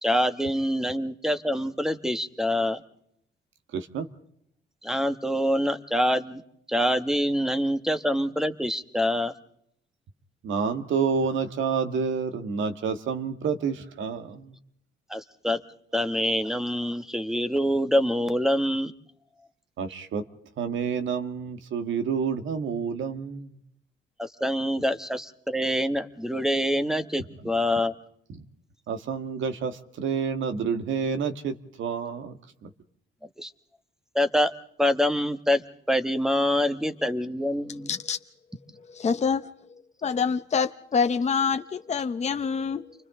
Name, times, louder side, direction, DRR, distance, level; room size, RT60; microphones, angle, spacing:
voice 1, 0.0-2.8 4.8-6.4 6.7-9.3 15.1-15.6 15.9-18.9 24.2-27.9 33.4-33.5 34.1-34.5 34.8-35.6 35.9-37.9, equal, ahead, 9 dB, 1.5 m, -25 dB
voice 2, 3.7-4.1 10.4-14.5 19.8-20.2 20.6-23.6 28.9-32.7, right 6 dB, 75° right, 8 dB, 1.8 m, -29 dB
voice 3, 37.9-38.2 39.0-39.4 40.0-42.9, left 6 dB, 35° left, 7 dB, 0.9 m, -26 dB
29.5 x 24.5 x 3.8 m, 0.72 s
cardioid pair, 90°, 20 cm